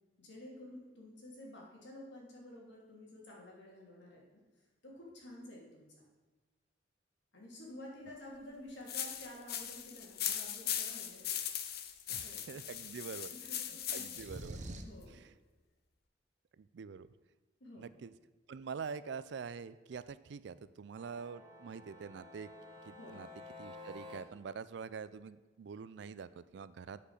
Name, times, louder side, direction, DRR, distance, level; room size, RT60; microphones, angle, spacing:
voice 1, 0.2-6.0 7.3-11.3 12.1-12.6 13.1-14.0 14.5-15.2 17.6-17.9 22.9-23.3, left 1 dB, 75° left, -2 dB, 2.7 m, -51 dB
sound 1, 8.9-14.4, left 10 dB, 55° left, 0.7 m, -39 dB
voice 2, 12.1-13.3 13.9-14.6 15.1-15.3 16.6-17.1 17.8-18.1 18.5-22.5 22.9-23.3 23.6-27.0, right 5 dB, 70° right, 15 dB, 0.4 m, -45 dB
sound 2, 14.1-15.0, right 1 dB, 40° right, 0.7 m, -44 dB
sound 3, 20.9-24.2, left 2 dB, 25° right, 1.5 m, -52 dB
8.5 x 5.4 x 6.4 m, 1.2 s
head